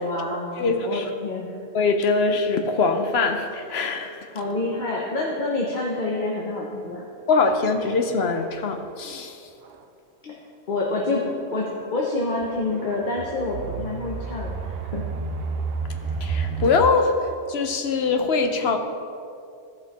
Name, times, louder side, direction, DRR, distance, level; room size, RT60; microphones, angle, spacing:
voice 1, 0.0-1.5 4.3-7.1 10.7-14.6 14.9-15.0, left 2 dB, 50° left, -2 dB, 1.0 m, -27 dB
voice 2, 0.6-1.1 1.7-4.3 7.3-9.4 10.3-10.4 16.2-18.8, left 4 dB, 70° left, 6 dB, 1.0 m, -23 dB
sound 1, 7.5-7.6 8.3-8.6 9.6-9.8 11.6-11.9 12.4-16.9, right 5 dB, 70° right, 0.8 m, -31 dB
14.0 x 5.5 x 4.1 m, 2.5 s
omnidirectional pair, 1.1 m